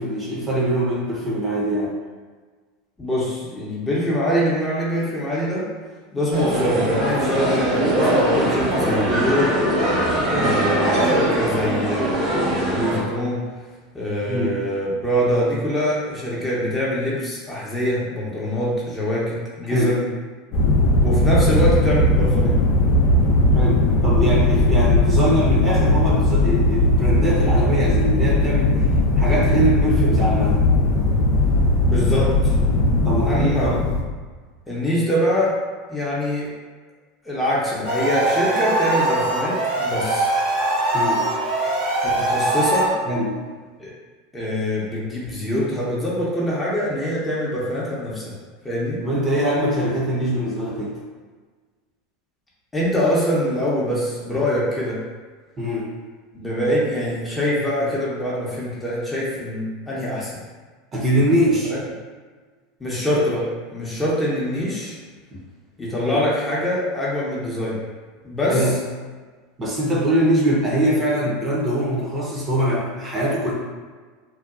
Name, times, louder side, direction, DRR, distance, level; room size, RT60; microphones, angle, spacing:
voice 1, 0.0-1.9 14.3-14.5 19.7-20.0 23.5-28.8 29.2-30.6 33.0-33.8 40.9-41.2 43.1-43.4 49.0-50.9 55.6-55.9 60.9-61.7 66.0-66.2 68.5-68.8 69.6-73.5, right 1 dB, 30° right, -5 dB, 0.8 m, -22 dB
voice 2, 3.0-5.7 6.1-9.6 10.3-13.5 13.9-20.0 21.0-22.6 31.8-32.6 33.3-33.7 34.7-35.5 35.9-36.5 37.2-40.3 42.0-42.9 43.8-43.9 44.3-48.3 48.6-49.0 52.7-55.0 56.3-60.4 61.6-61.8 62.8-63.5 63.7-65.0 65.8-67.8 68.2-68.7, equal, 15° left, -7 dB, 0.8 m, -24 dB
sound 1, 6.3-13.0, right 1 dB, 50° right, 1.1 m, -21 dB
sound 2, 20.5-34.0, left 1 dB, 50° left, 0.5 m, -18 dB
sound 3, 37.8-42.9, right 2 dB, 70° right, 1.3 m, -22 dB
2.7 x 2.2 x 2.4 m, 1.4 s
hypercardioid pair, 90°, 0 cm